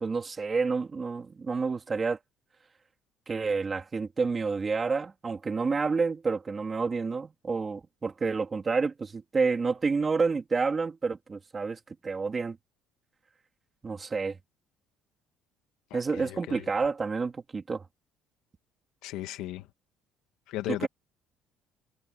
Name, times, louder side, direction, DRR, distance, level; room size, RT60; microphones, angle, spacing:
voice 1, 0.0-2.2 3.3-12.6 13.8-14.4 15.9-17.8 20.7-20.9, right 4 dB, 20° right, 2.5 m, -29 dB
voice 2, 15.9-16.7 19.0-19.7 20.5-20.9, left 15 dB, 75° left, 2.1 m, -36 dB
cardioid pair, 170°, 0 cm